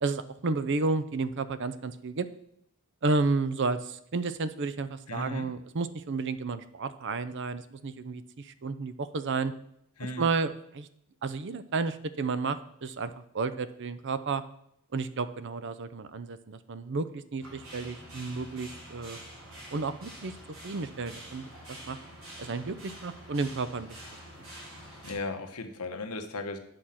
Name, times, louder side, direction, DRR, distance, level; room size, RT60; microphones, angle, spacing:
voice 1, 0.0-2.3 3.0-9.5 10.2-10.9 11.2-14.4 14.9-19.2 19.7-20.3 20.6-22.0 22.4-23.9, right 3 dB, 55° right, 13 dB, 0.6 m, -32 dB
voice 2, 5.1-5.5 10.0-10.3 25.0-26.6, left 3 dB, 90° left, 6 dB, 1.1 m, -36 dB
sound 1, 17.4-25.1, equal, 75° right, 3.9 m, -47 dB
9.0 x 6.3 x 5.7 m, 0.74 s
head